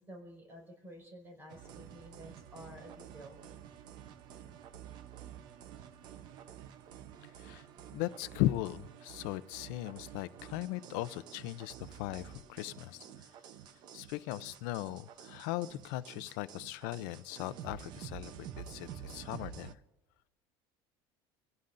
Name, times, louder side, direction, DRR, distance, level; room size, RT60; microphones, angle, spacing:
voice 1, 0.0-3.4 12.9-13.2, equal, 20° right, 0 dB, 5.1 m, -51 dB
sound 1, 1.5-19.7, right 9 dB, 40° right, 0.8 m, -50 dB
voice 2, 7.9-13.3 13.9-19.8, left 16 dB, 70° left, 14 dB, 0.6 m, -38 dB
28.5 x 17.0 x 2.6 m, 0.95 s
cardioid pair, 180°, 11 cm